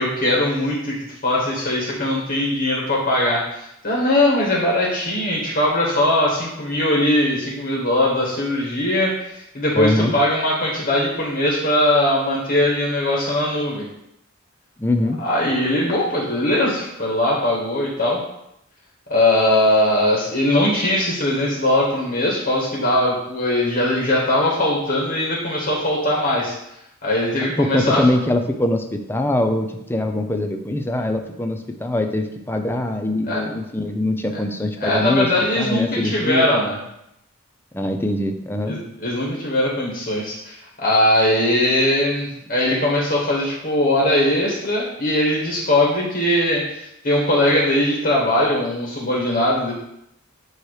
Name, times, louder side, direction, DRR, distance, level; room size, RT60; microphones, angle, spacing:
voice 1, 0.0-13.8 15.2-18.2 19.1-26.5 27.0-28.1 33.3-33.4 34.8-36.8 38.6-49.7, left 1 dB, 45° left, -4 dB, 1.7 m, -20 dB
voice 2, 9.7-10.1 14.8-15.2 27.6-35.3 35.6-36.5 37.7-38.8, left 1 dB, 10° left, 5 dB, 0.6 m, -22 dB
9.1 x 3.2 x 4.8 m, 0.79 s
head